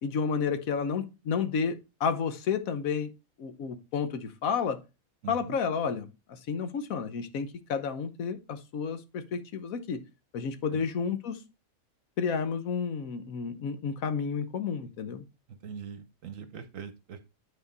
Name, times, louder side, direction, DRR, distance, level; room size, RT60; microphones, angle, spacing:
voice 1, 0.0-3.1 3.4-4.8 5.3-10.0 10.3-11.4 12.2-15.2, left 6 dB, 80° left, 1.3 m, -31 dB
voice 2, 5.2-5.6 10.7-10.8 15.5-17.3, right 7 dB, 70° right, 1.2 m, -42 dB
9.7 x 4.4 x 3.9 m
omnidirectional pair, 1.5 m